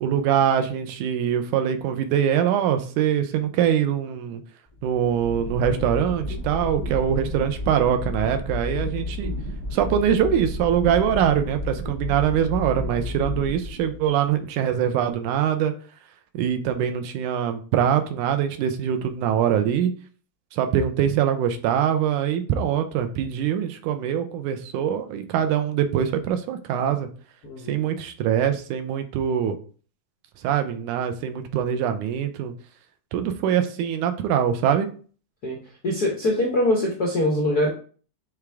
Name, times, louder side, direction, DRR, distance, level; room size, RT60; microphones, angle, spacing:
voice 1, 0.0-4.4 4.8-9.4 9.7-15.7 16.3-19.9 20.5-27.1 27.7-29.6 30.4-32.5 33.1-34.9, right 9 dB, 80° right, 7 dB, 2.1 m, -23 dB
sound 1, 4.7-14.3, left 1 dB, 30° left, 0.6 m, -31 dB
voice 2, 27.4-27.8 35.4-37.7, left 1 dB, 60° left, -2 dB, 1.0 m, -23 dB
8.0 x 3.6 x 3.5 m, 0.41 s
omnidirectional pair, 3.7 m